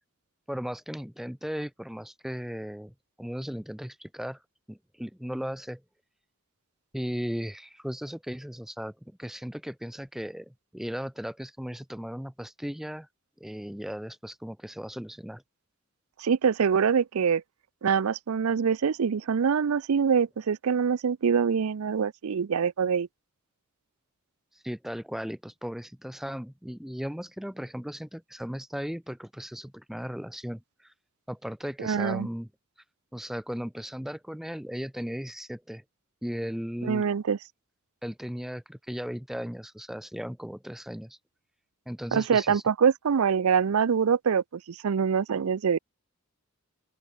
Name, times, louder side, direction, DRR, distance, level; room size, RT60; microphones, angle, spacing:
voice 1, 0.5-4.4 4.7-5.8 6.9-8.9 9.2-13.1 13.4-15.4 24.6-30.9 31.3-32.5 33.1-35.8 36.2-37.0 38.0-41.2 41.9-42.6, equal, ahead, 0.4 m, -36 dB
voice 2, 16.2-17.4 17.8-23.1 31.8-32.3 36.8-37.4 42.1-45.8, right 6 dB, 80° right, 0.5 m, -24 dB
open air
head